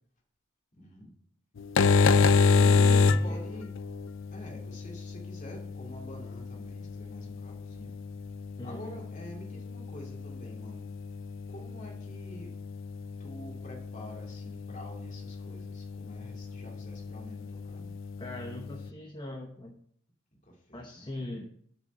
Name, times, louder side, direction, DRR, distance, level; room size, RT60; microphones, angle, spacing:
voice 1, 0.7-1.1 2.3-3.7 4.3-7.9 8.6-10.9 11.5-12.5 13.2-17.9 20.4-21.1, equal, 35° left, 0 dB, 2.6 m, -47 dB
sound 1, 1.6-18.9, left 4 dB, 60° left, 0.5 m, -29 dB
voice 2, 2.6-3.4 8.6-9.0 18.2-19.7 20.7-21.5, left 1 dB, 20° left, 3 dB, 0.9 m, -40 dB
7.1 x 6.8 x 7.6 m, 0.64 s
head